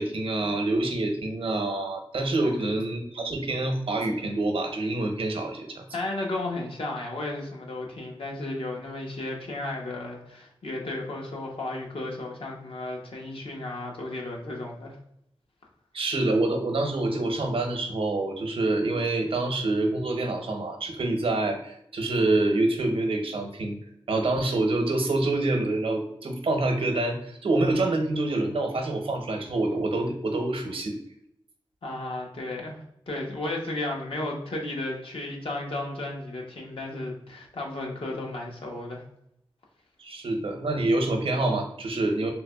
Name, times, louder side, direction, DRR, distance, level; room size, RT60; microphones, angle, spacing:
voice 1, 0.0-5.8 15.9-23.8 24.1-31.0 40.0-42.3, right 2 dB, 85° right, 4 dB, 0.7 m, -26 dB
voice 2, 2.4-2.7 5.9-15.0 31.8-39.0, left 2 dB, 75° left, -1 dB, 0.9 m, -34 dB
3.4 x 3.0 x 2.2 m, 0.74 s
wide cardioid pair, 110°, 9 cm